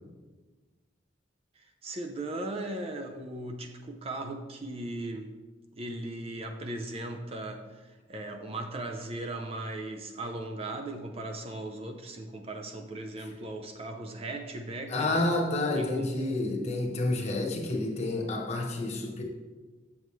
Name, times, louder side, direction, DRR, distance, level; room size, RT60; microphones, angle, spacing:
voice 1, 1.6-5.3 5.7-15.3 15.8-16.1, right 2 dB, 30° right, 4 dB, 0.5 m, -38 dB
voice 2, 14.9-19.2, left 2 dB, 35° left, 1 dB, 1.1 m, -29 dB
7.5 x 7.1 x 3.2 m, 1.3 s
head